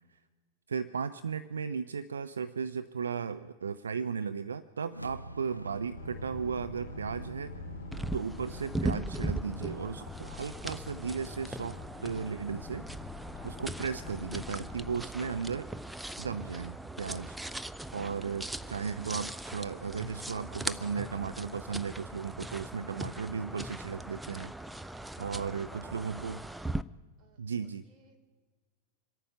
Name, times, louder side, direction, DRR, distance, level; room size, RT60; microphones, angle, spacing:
voice 1, 0.7-7.6 8.1-12.8 13.4-15.7 16.2-17.4 17.9-24.5 25.2-26.4 27.4-27.8, right 6 dB, 70° right, 13 dB, 0.4 m, -36 dB
sound 1, 4.9-10.3, right 1 dB, 90° left, 0.5 m, -46 dB
Boat Water vehicle, 6.0-15.0, left 7 dB, 30° left, 2.5 m, -46 dB
sound 2, 7.9-26.8, right 1 dB, 5° right, 0.4 m, -39 dB
voice 2, 24.9-26.1 27.2-28.2, right 4 dB, 35° right, 4 dB, 3.1 m, -61 dB
26.0 x 9.2 x 5.8 m, 1.4 s
figure-of-eight pair, 90°, 0 cm